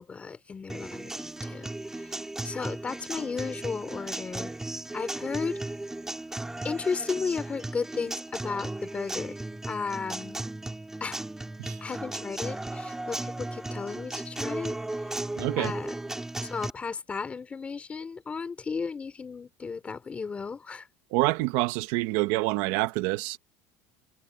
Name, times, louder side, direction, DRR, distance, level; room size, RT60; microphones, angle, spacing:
voice 1, 0.0-4.5 4.9-5.6 6.6-9.4 9.6-10.4 11.0-11.2 11.8-14.8 15.0-15.1 15.6-15.9 16.4-20.9, left 5 dB, 15° left, 3.1 m, -34 dB
Acoustic guitar, 0.7-16.7, right 2 dB, 5° right, 4.3 m, -36 dB
voice 2, 15.4-15.7 21.1-23.4, right 20 dB, 65° right, 1.0 m, -27 dB
cardioid pair, 155°, 7 cm